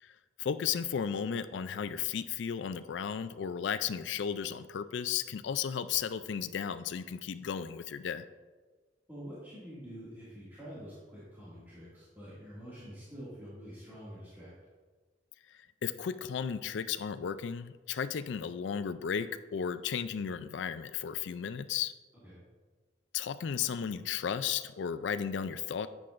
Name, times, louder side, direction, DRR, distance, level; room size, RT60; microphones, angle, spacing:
voice 1, 0.4-8.2 15.8-21.9 23.1-25.9, left 7 dB, 70° left, 12 dB, 0.4 m, -34 dB
voice 2, 9.1-14.5 22.2-22.4, equal, 10° right, -11 dB, 2.1 m, -47 dB
9.6 x 8.5 x 2.5 m, 1.4 s
head